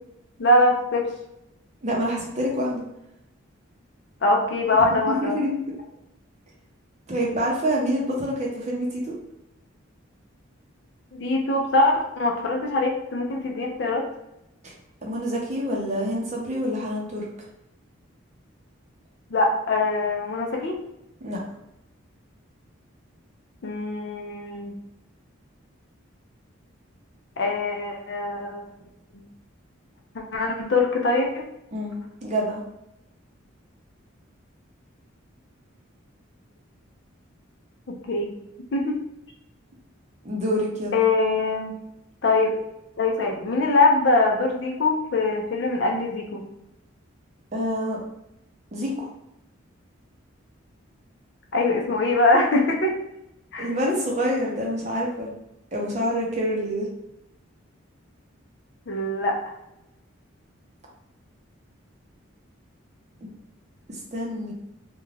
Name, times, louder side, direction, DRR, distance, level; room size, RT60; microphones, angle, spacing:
voice 1, 0.4-1.1 4.2-5.4 11.1-14.0 19.3-20.7 23.6-24.7 27.4-28.6 29.1-29.2 30.1-31.4 37.9-38.3 38.7-39.0 40.9-41.8 42.2-42.6 43.0-46.4 51.5-52.9 53.5-53.7 58.9-59.4, left 2 dB, 55° left, 1 dB, 0.5 m, -22 dB
voice 2, 1.8-2.8 5.1-5.6 7.1-9.1 14.6-14.7 15.0-17.3 21.2-21.4 31.7-32.6 40.2-41.0 47.5-48.0 48.7-49.1 53.6-55.3 55.7-56.9 63.2-63.3 64.1-64.5, equal, 35° right, -3 dB, 0.6 m, -27 dB
2.4 x 2.2 x 3.2 m, 0.87 s
head